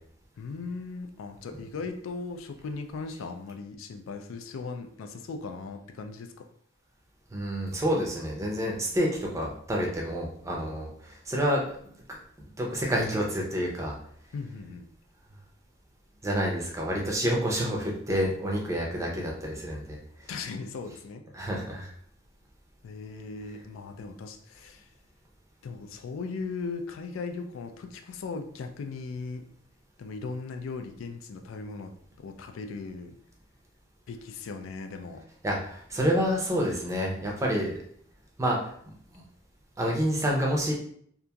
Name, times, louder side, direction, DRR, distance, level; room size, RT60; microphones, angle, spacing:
voice 1, 0.4-6.3 14.3-14.9 20.3-21.2 22.8-24.8 25.6-29.4 30.0-31.9 32.2-33.1 34.1-35.2, left 4 dB, 80° left, 6 dB, 0.3 m, -38 dB
voice 2, 7.3-11.6 12.6-13.9 16.2-20.0 21.3-21.9 35.4-37.7 38.4-38.6 39.1-39.2 39.8-40.7, equal, 15° right, -2 dB, 0.5 m, -28 dB
2.8 x 2.5 x 2.3 m, 0.64 s
head